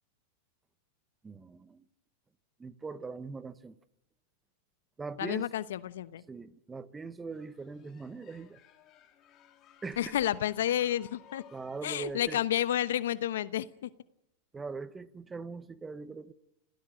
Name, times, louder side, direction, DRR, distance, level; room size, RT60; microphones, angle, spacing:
voice 1, 1.2-1.8 2.6-3.8 5.0-5.5 6.3-8.6 9.8-10.2 11.5-12.4 14.5-16.3, right 4 dB, 15° right, 1.1 m, -41 dB
voice 2, 5.2-6.2 10.0-11.4 11.8-13.9, left 11 dB, 80° left, 0.9 m, -30 dB
sound 1, 7.3-12.3, left 10 dB, 40° left, 3.1 m, -59 dB
27.0 x 17.0 x 6.4 m
hypercardioid pair, 120°, 0 cm